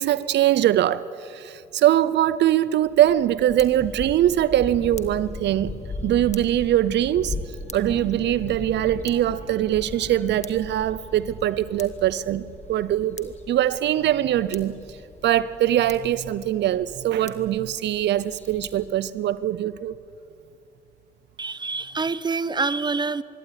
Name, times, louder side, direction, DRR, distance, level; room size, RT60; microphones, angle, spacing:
voice 1, 0.0-5.8 6.0-7.4 7.7-15.0 15.2-20.0, right 12 dB, 80° right, 0.6 m, -22 dB
sound 1, 2.8-18.9, left 3 dB, 40° left, 1.7 m, -39 dB
voice 2, 21.4-23.2, right 4 dB, 25° right, 0.8 m, -26 dB
25.5 x 12.0 x 9.7 m
cardioid pair, 65°, 18 cm